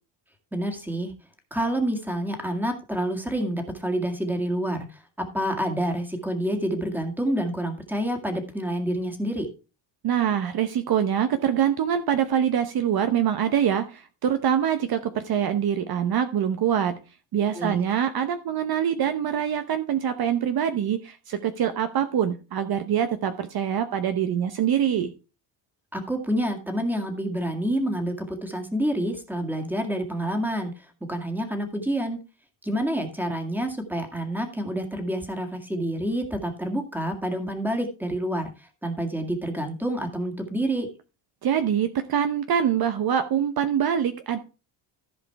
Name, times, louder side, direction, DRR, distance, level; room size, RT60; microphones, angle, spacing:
voice 1, 0.5-1.1 1.5-9.5 17.5-17.8 25.9-32.2 32.6-40.9, right 1 dB, 5° right, 5 dB, 1.9 m, -28 dB
voice 2, 10.0-17.0 17.3-25.1 41.4-44.4, right 9 dB, 50° right, 9 dB, 0.9 m, -24 dB
14.5 x 4.9 x 4.6 m, 0.33 s
cardioid pair, 135°, 49 cm